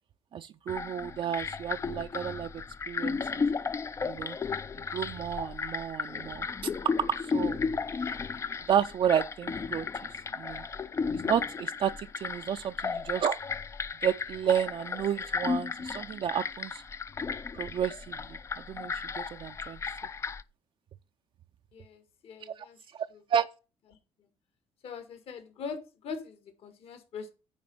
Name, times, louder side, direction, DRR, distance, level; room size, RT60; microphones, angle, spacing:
voice 1, 0.3-3.4 4.0-4.4 4.9-6.5 6.8-7.6 8.7-9.9 10.4-10.6 11.1-13.4 14.0-16.8 17.6-19.8 22.4-22.6 22.9-23.5, right 9 dB, 50° right, 0.5 m, -31 dB
sound 1, 0.7-20.4, left 5 dB, 25° left, 0.4 m, -34 dB
voice 2, 21.7-22.8 24.8-27.3, left 5 dB, 60° left, 2.0 m, -42 dB
9.6 x 3.9 x 7.1 m
cardioid pair, 110°, 11 cm